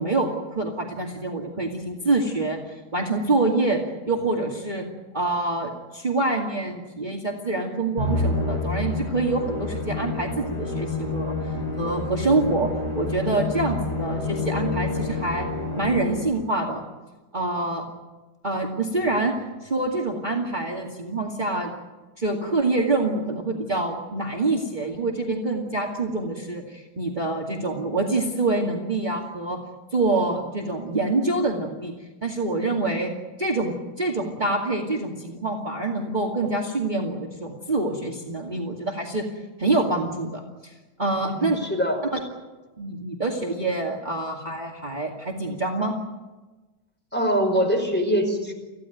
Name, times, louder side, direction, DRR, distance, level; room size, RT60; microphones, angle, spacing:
voice 1, 0.0-3.8 4.1-4.9 5.1-11.3 11.8-15.5 15.7-16.8 17.3-17.8 18.4-19.3 19.6-21.7 22.2-29.6 29.9-31.9 32.2-33.1 33.4-39.2 39.6-40.7 41.0-41.6 42.1-42.2 42.8-45.9, right 2 dB, 25° right, 0 dB, 2.3 m, -26 dB
Musical instrument, 8.0-16.5, left 3 dB, 65° left, 5.1 m, -28 dB
voice 2, 41.3-42.0 47.1-48.5, equal, 5° left, 3 dB, 5.0 m, -23 dB
27.5 x 16.0 x 9.2 m, 1.2 s
omnidirectional pair, 1.9 m